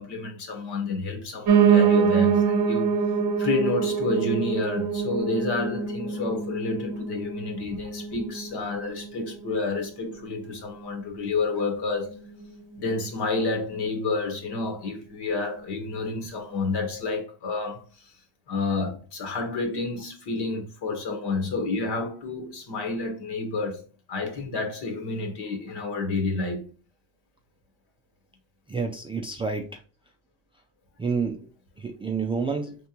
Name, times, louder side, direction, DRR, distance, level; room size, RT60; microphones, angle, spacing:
voice 1, 0.0-2.9 3.4-12.2 12.8-18.1 18.5-23.8 24.1-26.6, left 3 dB, 55° left, 1.5 m, -29 dB
Piano, 1.5-10.6 11.0-12.1 12.4-12.5 12.7-12.8 13.1-13.2 13.7-13.8, right 7 dB, 45° right, 0.8 m, -25 dB
voice 2, 28.7-29.8 31.0-31.5 31.8-32.8, right 5 dB, 15° right, 0.3 m, -29 dB
4.2 x 3.4 x 2.9 m
supercardioid pair, 95°, 46 cm